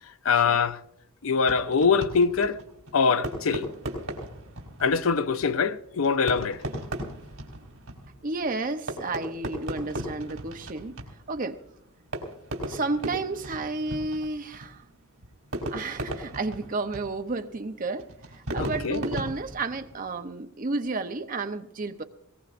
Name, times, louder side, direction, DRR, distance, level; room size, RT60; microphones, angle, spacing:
voice 1, 0.2-0.8 1.2-2.6 2.9-3.7 4.8-6.6 18.6-19.0, left 5 dB, 70° left, 0.6 m, -23 dB
Fireworks, 1.4-20.2, right 1 dB, 80° right, 3.7 m, -37 dB
voice 2, 8.2-11.0 11.3-11.6 12.7-14.8 15.7-22.0, right 3 dB, 40° right, 0.7 m, -32 dB
21.5 x 19.0 x 2.6 m
head